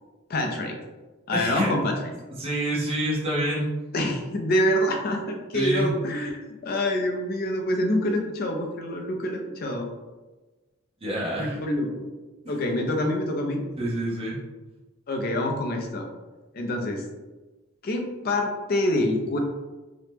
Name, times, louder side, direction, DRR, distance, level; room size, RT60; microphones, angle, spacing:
voice 1, 0.3-0.7 1.3-2.0 3.9-9.9 11.4-12.1 12.5-13.6 15.1-16.1 16.5-17.0 17.8-19.4, left 1 dB, 45° left, 3 dB, 0.4 m, -26 dB
voice 2, 1.3-1.7 2.4-3.7 5.5-5.9 11.0-11.6 13.8-14.4, right 1 dB, 25° right, -6 dB, 0.8 m, -27 dB
2.9 x 2.1 x 3.3 m, 1.2 s
head